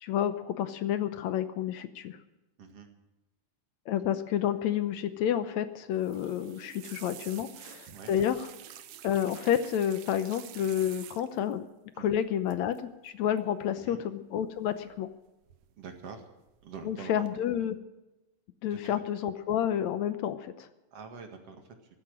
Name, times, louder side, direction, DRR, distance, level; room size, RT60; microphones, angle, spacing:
voice 1, 0.0-2.2 3.9-8.4 9.0-11.6 12.0-15.1 16.9-17.8 18.6-20.7, left 10 dB, 75° left, 11 dB, 2.1 m, -30 dB
voice 2, 2.6-2.9 7.9-8.1 11.9-12.1 13.8-14.0 15.8-16.3 16.6-17.3 18.7-19.0 20.9-21.8, right 5 dB, 55° right, 5 dB, 2.8 m, -45 dB
sound 1, 5.9-11.5 12.5-12.8 13.1-13.4 14.6-15.1 15.5-16.0 16.5-16.9 17.3-17.4, right 11 dB, 85° right, 2.5 m, -49 dB
14.5 x 14.0 x 6.3 m, 1.0 s
omnidirectional pair, 3.4 m